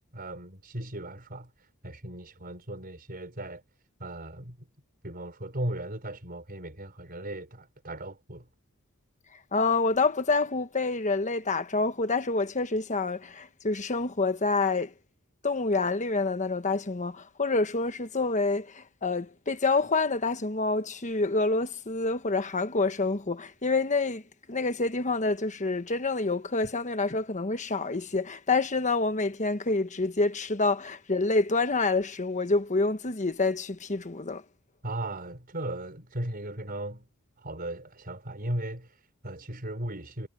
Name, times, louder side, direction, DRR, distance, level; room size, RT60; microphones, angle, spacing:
voice 1, 0.0-3.6 4.0-4.7 5.0-8.5 34.8-37.1 37.4-40.3, right 1 dB, 45° right, 5.4 m, -37 dB
voice 2, 9.5-14.9 15.4-24.2 24.5-34.4, left 3 dB, 35° left, 1.2 m, -27 dB
head